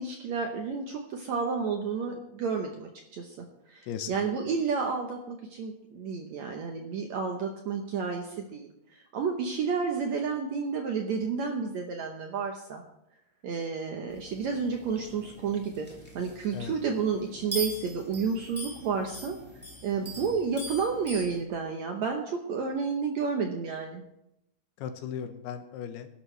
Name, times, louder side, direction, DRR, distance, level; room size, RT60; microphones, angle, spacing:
voice 1, 0.0-3.4 3.7-12.8 13.4-15.9 16.1-19.4 19.8-24.0, right 5 dB, 80° right, 3 dB, 1.6 m, -31 dB
voice 2, 3.8-4.3 16.5-16.7 20.2-20.3 24.8-26.1, left 8 dB, 80° left, 8 dB, 2.9 m, -37 dB
sound 1, 14.1-21.4, right 1 dB, 5° right, 1.9 m, -42 dB
19.5 x 11.5 x 3.3 m, 0.83 s
omnidirectional pair, 4.6 m